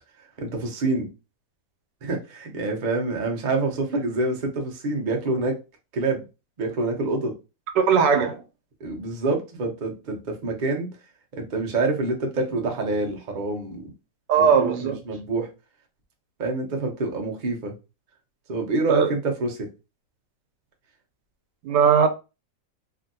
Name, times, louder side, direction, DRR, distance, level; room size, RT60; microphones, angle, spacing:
voice 1, 0.4-1.1 2.0-5.6 5.9-6.2 6.6-7.3 8.8-10.9 11.3-13.9 14.4-15.5 16.4-17.7 18.5-19.7, right 3 dB, 55° right, 0.5 m, -27 dB
voice 2, 7.9-8.4 14.3-14.9 18.9-19.1 21.6-22.1, right 6 dB, 80° right, 1.3 m, -18 dB
3.0 x 2.6 x 2.6 m
omnidirectional pair, 1.9 m